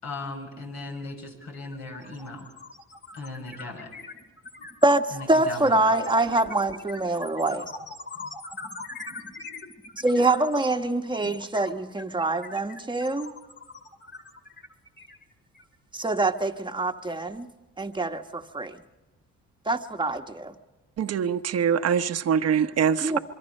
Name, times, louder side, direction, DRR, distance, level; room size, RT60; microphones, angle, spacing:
voice 1, 0.0-2.5 3.1-3.9 5.1-5.9, left 2 dB, 65° left, 6.1 m, -37 dB
sound 1, 0.9-1.1 1.4-15.7, left 3 dB, 35° left, 2.6 m, -42 dB
voice 2, 4.8-7.7 10.0-13.3 15.9-17.5 17.8-18.8 19.6-20.5 23.0-23.2, right 2 dB, 15° right, 1.3 m, -25 dB
voice 3, 21.0-23.2, right 7 dB, 55° right, 1.0 m, -24 dB
26.0 x 23.0 x 5.5 m
cardioid pair, 90°, 30 cm